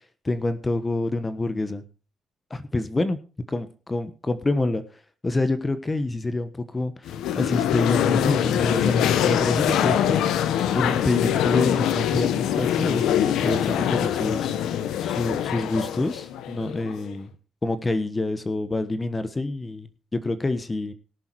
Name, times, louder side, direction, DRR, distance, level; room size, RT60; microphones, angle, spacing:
voice 1, 0.2-1.8 2.5-3.2 3.5-4.8 5.2-10.2 10.7-14.5 15.0-17.3 17.6-20.9, left 2 dB, 20° left, 12 dB, 1.2 m, -27 dB
sound 1, 7.1-17.1, left 10 dB, 85° left, 1.0 m, -24 dB
17.5 x 7.1 x 4.5 m, 0.35 s
cardioid pair, 90°, 0 cm